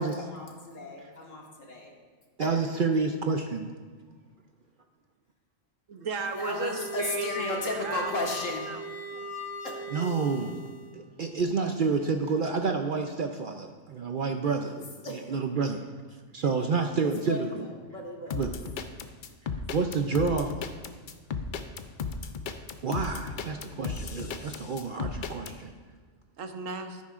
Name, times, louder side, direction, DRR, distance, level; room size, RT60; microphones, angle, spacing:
voice 1, 0.0-1.9 2.4-2.5 6.4-8.7 9.6-9.7 14.6-15.2 17.0-18.5, left 2 dB, 80° left, -1 dB, 1.9 m, -35 dB
voice 2, 2.4-3.7 9.1-9.2 9.9-10.7 10.9-15.8 16.3-17.7 18.3-18.5 19.7-20.6 22.8-25.7, right 4 dB, 60° right, 5 dB, 0.5 m, -29 dB
voice 3, 5.9-8.8 26.4-27.0, right 4 dB, 80° right, 6 dB, 1.2 m, -35 dB
sound 1, 6.1-10.9, equal, 35° left, 1.3 m, -39 dB
sound 2, 18.3-25.5, left 5 dB, 55° left, 0.6 m, -35 dB
13.5 x 10.5 x 2.5 m, 1.5 s
omnidirectional pair, 1.3 m